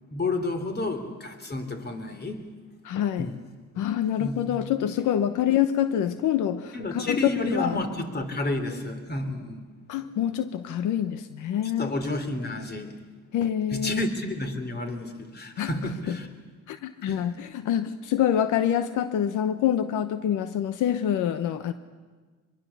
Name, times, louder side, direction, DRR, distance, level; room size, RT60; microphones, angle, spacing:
voice 1, 0.1-2.5 3.2-3.4 4.2-4.6 6.7-9.6 11.8-13.0 13.7-16.3 17.1-17.3, left 2 dB, 35° left, 3.1 m, -30 dB
voice 2, 2.8-3.3 3.7-7.8 9.9-11.9 13.3-14.0 15.6-15.7 16.1-16.2 16.7-21.7, left 10 dB, 85° left, 1.0 m, -26 dB
24.0 x 23.0 x 7.0 m
cardioid pair, 90°, 30 cm